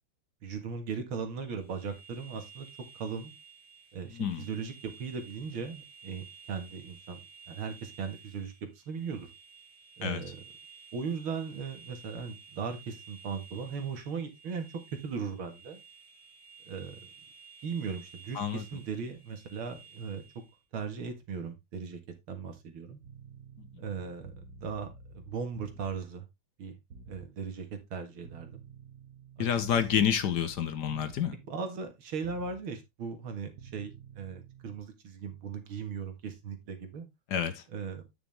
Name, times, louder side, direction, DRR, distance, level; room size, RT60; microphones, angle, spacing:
voice 1, 0.4-2.7 2.9-3.3 3.9-7.2 7.5-9.3 10.0-10.4 10.9-14.7 15.0-15.8 16.7-17.1 17.6-20.2 20.7-22.0 22.3-23.0 23.8-24.9 25.1-26.3 26.6-26.8 27.1-28.6 30.0-30.1 31.5-37.1 37.7-38.0, right 6 dB, 90° right, 2.6 m, -38 dB
sound 1, 1.4-20.6, right 6 dB, 25° left, 3.8 m, -54 dB
voice 2, 4.1-4.4 10.0-10.2 18.3-18.6 29.4-31.3 37.3-37.6, left 8 dB, 60° left, 1.4 m, -28 dB
sound 2, 23.0-26.1 26.9-27.3 28.2-31.4 32.2-32.6 33.6-34.8, right 5 dB, 55° right, 1.5 m, -50 dB
9.3 x 6.2 x 3.5 m
omnidirectional pair, 2.2 m